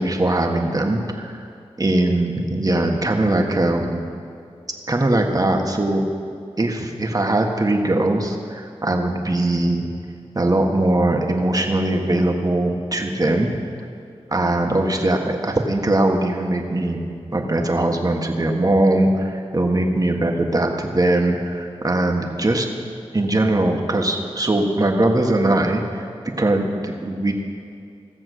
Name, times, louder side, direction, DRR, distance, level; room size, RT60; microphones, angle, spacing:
voice 1, 0.0-1.4 1.8-4.0 4.9-6.0 6.6-9.9 10.3-13.5 14.3-17.0 17.3-22.7 23.1-27.3, right 1 dB, 35° right, 2 dB, 1.6 m, -20 dB
17.0 x 7.5 x 6.3 m, 2.4 s
cardioid pair, 55°, 11 cm